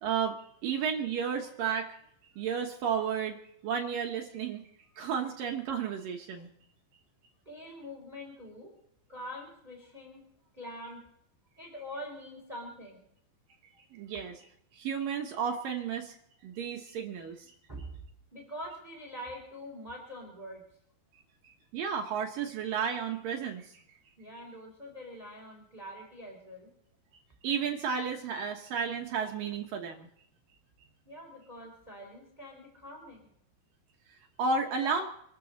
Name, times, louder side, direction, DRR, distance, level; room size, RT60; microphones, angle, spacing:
voice 1, 0.0-2.0 2.4-4.7 5.0-6.5 13.9-14.5 14.7-16.2 16.4-17.5 21.4-23.8 27.4-30.1 34.4-35.1, right 6 dB, 70° right, 2 dB, 2.3 m, -33 dB
voice 2, 7.5-8.7 9.1-10.2 10.5-11.0 11.6-13.0 17.7-18.0 18.3-20.6 24.2-26.7 31.1-33.3 34.8-34.9, equal, 10° right, 1 dB, 3.8 m, -44 dB
26.0 x 13.0 x 4.1 m, 0.71 s
omnidirectional pair, 5.3 m